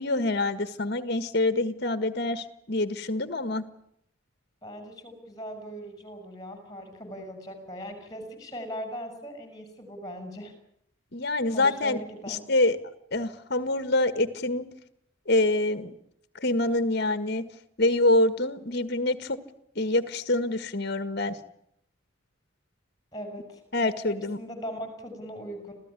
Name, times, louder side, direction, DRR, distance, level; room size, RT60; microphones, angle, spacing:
voice 1, 0.0-3.6 11.1-12.0 12.3-12.8 13.1-14.7 15.3-15.9 16.4-17.4 17.8-19.4 19.7-21.4 23.7-24.4, left 2 dB, 55° left, 12 dB, 1.7 m, -26 dB
voice 2, 4.6-10.5 11.5-12.4 23.1-23.6 24.1-25.8, equal, 20° left, 8 dB, 6.5 m, -39 dB
27.0 x 16.0 x 9.8 m, 0.74 s
head